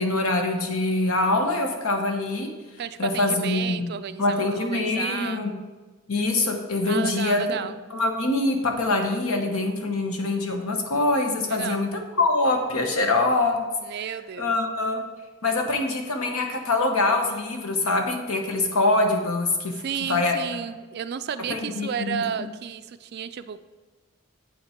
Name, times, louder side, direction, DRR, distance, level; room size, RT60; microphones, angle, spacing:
voice 1, 0.0-2.5 3.0-3.9 4.2-5.5 6.1-13.6 14.4-15.0 15.4-20.4 21.5-22.5, left 2 dB, 80° left, 3 dB, 1.2 m, -24 dB
voice 2, 2.8-5.4 6.8-7.8 11.5-11.8 13.8-14.5 19.8-23.6, right 8 dB, 50° right, 12 dB, 0.3 m, -32 dB
8.3 x 5.7 x 4.4 m, 1.2 s
head